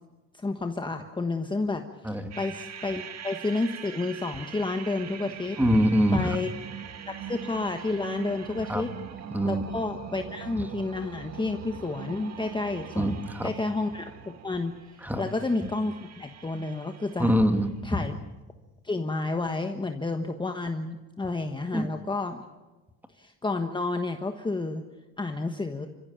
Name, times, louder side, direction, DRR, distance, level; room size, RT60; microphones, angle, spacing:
voice 1, 0.3-5.6 6.1-6.5 7.1-8.9 9.4-13.2 13.4-14.8 15.2-17.3 17.8-18.1 18.8-22.4 23.1-24.8 25.2-25.9, left 3 dB, 15° left, 5 dB, 1.3 m, -30 dB
sound 1, 2.3-17.6, right 8 dB, 50° right, 1.9 m, -42 dB
voice 2, 5.6-6.4 8.7-8.8 9.3-9.6 13.0-13.5 15.0-15.2 17.2-18.1 21.7-21.9, equal, 5° right, 7 dB, 2.2 m, -24 dB
28.5 x 15.5 x 8.9 m, 1.2 s
cardioid pair, 115°, 33 cm